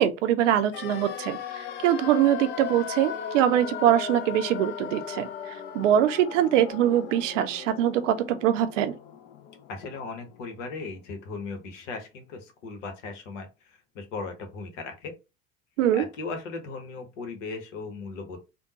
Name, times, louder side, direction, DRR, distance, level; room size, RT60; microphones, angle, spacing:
voice 1, 0.0-9.0 15.8-16.1, right 11 dB, 65° right, 0.6 m, -23 dB
sound 1, 0.7-10.7 10.9-11.0, left 8 dB, 30° left, 0.3 m, -38 dB
voice 2, 9.7-15.1 15.9-18.4, left 4 dB, 65° left, 1.0 m, -37 dB
3.5 x 2.2 x 2.8 m
figure-of-eight pair, 65°, 39 cm